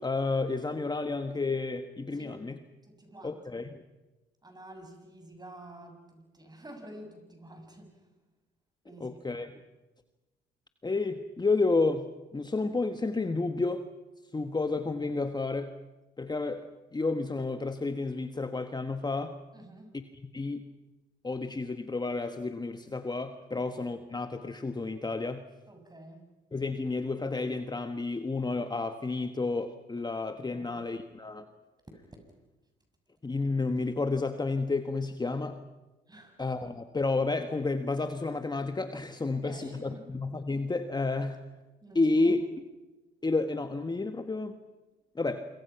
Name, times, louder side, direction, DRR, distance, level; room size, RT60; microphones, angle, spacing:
voice 1, 0.0-2.6 3.2-3.8 9.0-9.6 10.8-12.1 12.3-13.8 14.3-15.7 16.2-19.3 19.9-20.0 20.3-20.6 21.2-25.4 26.5-31.5 33.2-35.6 36.4-41.4 41.9-42.4 43.2-44.5 45.1-45.5, left 3 dB, 20° left, 8 dB, 1.5 m, -31 dB
voice 2, 2.1-2.5 2.8-3.4 4.4-8.1 8.9-9.2 19.5-19.9 23.5-23.6 25.7-26.3 36.1-36.4 39.4-40.1 41.8-42.3, right 1 dB, 20° right, 5 dB, 7.0 m, -49 dB
27.0 x 24.5 x 5.9 m, 1.1 s
supercardioid pair, 60°, 20 cm